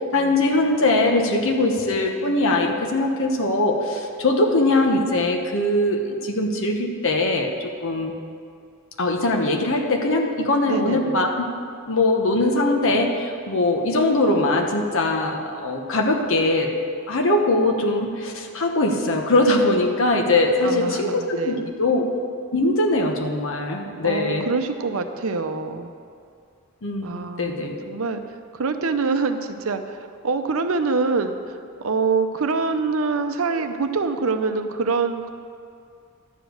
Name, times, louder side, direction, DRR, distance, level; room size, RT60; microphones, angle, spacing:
voice 1, 0.1-8.1 9.0-11.4 11.9-16.7 17.1-22.0 22.5-24.5 26.8-27.8, left 2 dB, 60° left, 3 dB, 1.0 m, -21 dB
voice 2, 10.7-11.2 20.6-21.7 24.0-25.9 27.0-28.2 28.5-31.5 31.8-35.3, right 4 dB, 65° right, 8 dB, 0.7 m, -25 dB
11.5 x 5.0 x 7.9 m, 2.4 s
head